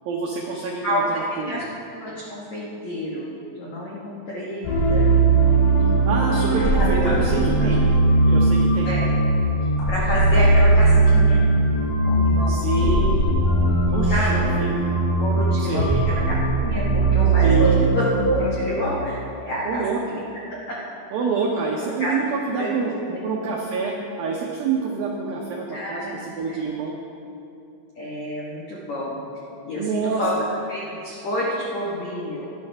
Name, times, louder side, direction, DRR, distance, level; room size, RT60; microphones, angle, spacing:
voice 1, 0.1-1.6 6.1-7.8 8.3-8.9 10.3-10.5 12.5-13.4 13.9-14.9 15.6-16.0 17.4-17.8 19.7-20.0 21.1-22.9 23.2-26.9 29.8-30.4, right 4 dB, 90° right, -1 dB, 2.0 m, -27 dB
voice 2, 0.8-1.6 2.0-5.1 6.8-7.1 7.6-7.7 8.8-9.1 9.9-11.5 12.0-12.7 14.1-14.7 15.2-16.4 16.6-20.2 20.7-20.8 22.0-22.1 22.5-22.7 23.0-23.2 25.7-26.2 26.5-26.6 28.0-29.2 29.7-30.3 30.7-32.5, equal, 60° left, -6 dB, 1.9 m, -29 dB
sound 1, 4.6-18.3, right 2 dB, 80° left, 5.8 m, -19 dB
18.0 x 11.0 x 3.5 m, 2.7 s
omnidirectional pair, 5.6 m